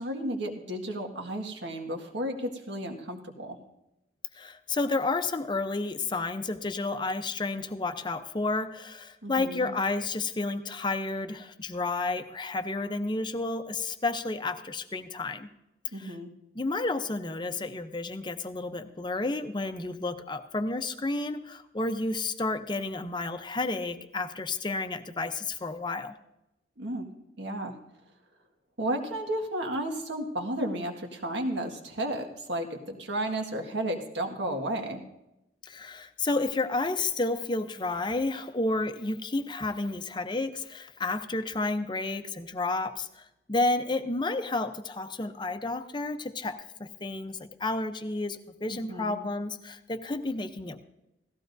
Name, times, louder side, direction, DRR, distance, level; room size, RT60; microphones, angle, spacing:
voice 1, 0.0-3.6 9.2-9.7 15.9-16.3 26.8-27.1 27.4-27.7 28.8-35.0 48.7-49.2, right 1 dB, 80° right, 3 dB, 1.7 m, -33 dB
voice 2, 4.3-15.5 16.0-16.2 16.5-26.1 35.6-50.8, left 2 dB, 25° left, 9 dB, 0.7 m, -31 dB
17.5 x 14.5 x 2.6 m, 0.90 s
head